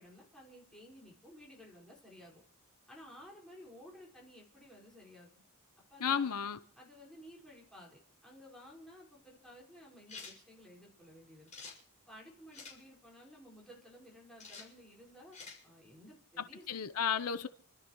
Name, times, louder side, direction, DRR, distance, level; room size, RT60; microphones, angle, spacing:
voice 1, 0.0-2.4 2.9-5.3 5.9-6.4 6.8-11.5 12.1-15.4 15.6-16.7, equal, 5° left, 5.0 m, -55 dB
voice 2, 6.0-6.6 16.4-17.5, left 7 dB, 85° left, 0.8 m, -33 dB
sound 1, 10.1-10.4 11.5-11.8 12.5-12.8 14.4-14.7 15.3-15.6, left 4 dB, 35° left, 5.5 m, -48 dB
28.5 x 13.5 x 3.1 m
head